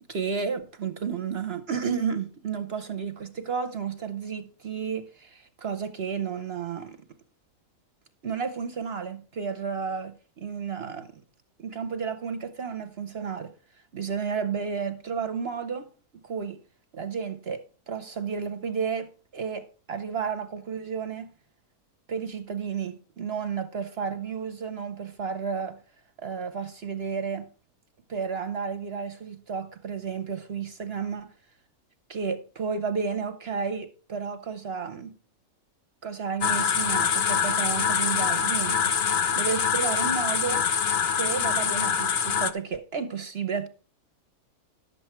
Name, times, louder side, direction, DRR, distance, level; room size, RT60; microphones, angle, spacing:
voice 1, 0.1-7.0 8.2-11.2 11.6-13.5 13.9-15.9 16.2-16.6 16.9-17.6 17.9-21.3 22.1-25.8 26.2-27.5 28.1-31.3 32.1-35.1 36.0-40.6 41.1-43.7, right 6 dB, 50° right, 0.8 m, -32 dB
sound 1, 36.4-42.5, left 7 dB, 55° left, 0.8 m, -25 dB
11.5 x 7.7 x 4.4 m
omnidirectional pair, 1.6 m